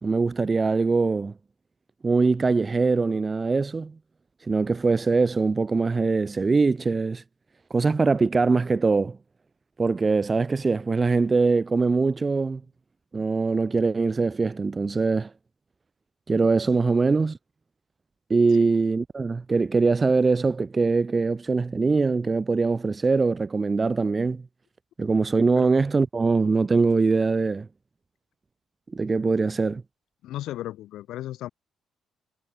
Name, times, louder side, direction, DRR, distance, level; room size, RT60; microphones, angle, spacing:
voice 1, 0.0-1.3 2.0-3.9 4.5-7.2 7.7-9.2 9.8-12.6 13.1-15.3 16.3-17.4 18.3-24.4 25.0-27.7 28.9-29.8, right 4 dB, 30° right, 2.5 m, -22 dB
voice 2, 30.2-31.5, left 14 dB, 85° left, 6.6 m, -35 dB
cardioid pair, 90°, 0 cm